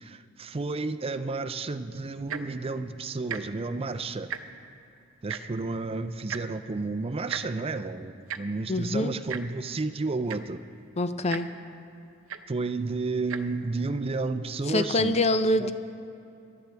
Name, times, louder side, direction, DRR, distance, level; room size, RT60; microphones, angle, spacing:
voice 1, 0.0-4.3 5.2-10.6 12.5-15.2 15.6-15.7, right 3 dB, 30° right, 0.5 m, -31 dB
Tick-tock, 2.2-2.6 3.2-3.4 3.7-3.9 4.1-4.7 5.3-5.4 6.3-6.4 7.3-7.4 8.3-8.4 9.3-9.4 10.0-10.1 10.3-10.6 11.3-11.4 12.3-12.4 13.2-13.4 14.1-14.2, right 8 dB, 70° right, 0.7 m, -35 dB
voice 2, 8.7-9.1 11.0-11.5 14.7-15.7, left 1 dB, 30° left, 0.6 m, -25 dB
24.5 x 11.5 x 3.4 m
head